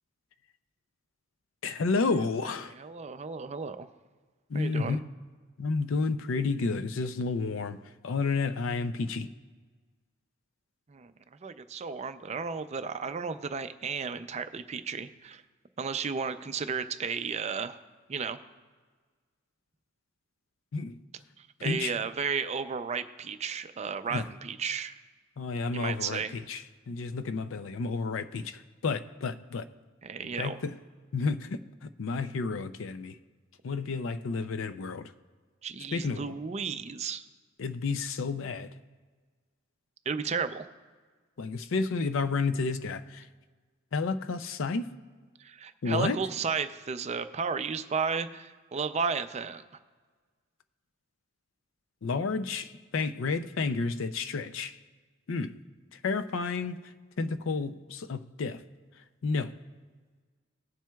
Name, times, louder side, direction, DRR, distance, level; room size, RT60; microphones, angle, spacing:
voice 1, 1.6-2.7 4.5-5.0 5.6-7.8 8.0-9.3 20.7-21.0 21.6-21.9 24.1-24.2 25.4-29.7 30.4-30.7 31.1-33.2 33.6-35.1 35.9-36.3 37.6-38.7 41.4-43.3 43.9-44.9 45.8-46.2 52.0-54.8 55.3-55.5 55.9-56.8 57.2-58.6 59.2-59.6, left 4 dB, 70° left, 0.5 m, -31 dB
voice 2, 2.8-3.9 4.5-5.0 10.9-11.1 11.4-15.4 15.8-17.8 18.1-18.4 21.4-25.0 25.7-26.3 30.0-30.6 35.6-37.2 40.1-40.7 45.4-49.6, right 5 dB, 30° right, 0.4 m, -33 dB
19.0 x 7.4 x 2.3 m
head